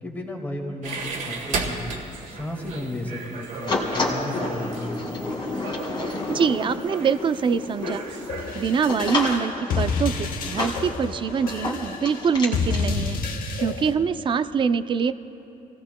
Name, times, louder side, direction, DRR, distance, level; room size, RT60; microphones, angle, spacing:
voice 1, 0.0-1.9 2.3-5.2, left 1 dB, 10° left, 0 dB, 1.9 m, -34 dB
sound 1, 0.8-9.0, right 4 dB, 60° right, 1.7 m, -35 dB
sound 2, 3.7-12.8, left 2 dB, 30° left, 2.0 m, -31 dB
voice 2, 6.3-8.2 8.5-13.2 13.5-15.1, right 6 dB, 35° right, 12 dB, 0.4 m, -24 dB
sound 3, 8.3-13.9, left 4 dB, 70° left, 1.1 m, -29 dB
28.0 x 17.5 x 2.2 m, 2.8 s
cardioid pair, 165°, 15 cm